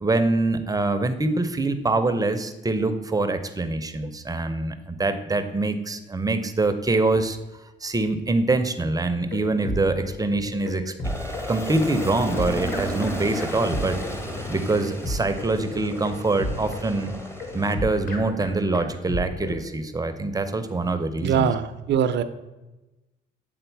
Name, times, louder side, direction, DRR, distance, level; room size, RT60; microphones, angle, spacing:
voice 1, 0.0-7.4 7.8-10.9 11.5-14.0 14.5-17.1 17.5-21.5, right 2 dB, 20° right, 9 dB, 0.6 m, -24 dB
sound 1, 9.0-19.6, left 1 dB, 45° left, 1.5 m, -33 dB
Aircraft, 11.0-17.7, equal, 15° left, 0.8 m, -33 dB
voice 2, 21.2-22.2, right 8 dB, 60° right, 11 dB, 0.5 m, -22 dB
8.0 x 3.7 x 4.6 m, 1.1 s
cardioid pair, 90°, 20 cm